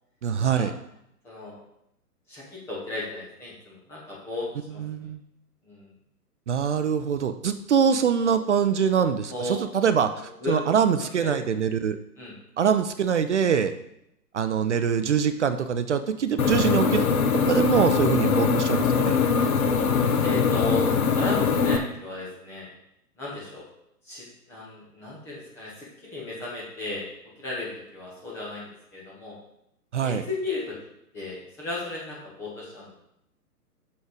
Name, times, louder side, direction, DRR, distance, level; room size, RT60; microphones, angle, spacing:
voice 1, 0.2-0.7 4.8-5.2 6.5-12.0 12.6-13.7 14.3-17.1 17.5-19.2 29.9-30.2, right 7 dB, 50° right, 10 dB, 0.5 m, -24 dB
voice 2, 1.2-1.6 2.3-4.8 5.6-5.9 9.3-9.5 10.4-10.6 11.0-11.3 12.2-12.3 20.2-22.7 23.2-23.7 24.0-27.1 27.4-29.3 30.0-30.8 31.1-32.9, left 2 dB, 5° left, -5 dB, 0.5 m, -35 dB
sound 1, 16.4-21.8, left 5 dB, 60° left, 1.0 m, -22 dB
6.4 x 5.7 x 4.9 m, 0.80 s
figure-of-eight pair, 125°, 48 cm